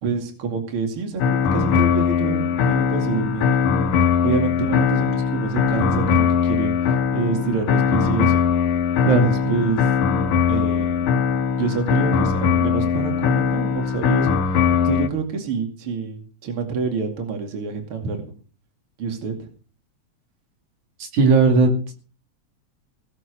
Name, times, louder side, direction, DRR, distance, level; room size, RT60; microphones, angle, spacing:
voice 1, 0.0-3.6 4.2-6.7 7.1-8.6 9.0-9.9 10.5-11.2 11.6-14.4 14.7-18.2 19.0-19.5, right 5 dB, 45° right, 4 dB, 3.1 m, -27 dB
sound 1, 1.2-15.1, left 6 dB, 90° left, 2.5 m, -20 dB
voice 2, 21.1-21.9, right 3 dB, 80° right, 3 dB, 3.9 m, -16 dB
18.0 x 7.5 x 6.6 m, 0.40 s
omnidirectional pair, 3.4 m